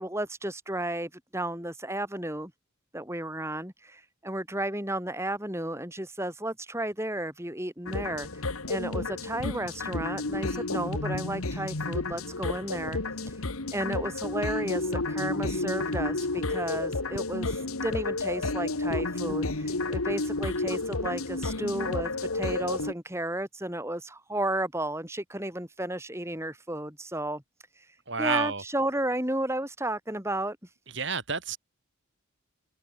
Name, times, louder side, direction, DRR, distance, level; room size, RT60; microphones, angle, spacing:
voice 1, 0.0-2.5 2.9-27.4 27.7-30.7, right 1 dB, 10° right, 4.7 m, -33 dB
sound 1, 7.9-22.9, left 2 dB, 90° left, 2.1 m, -31 dB
voice 2, 28.1-28.6 30.9-31.6, right 5 dB, 55° right, 4.8 m, -29 dB
open air
head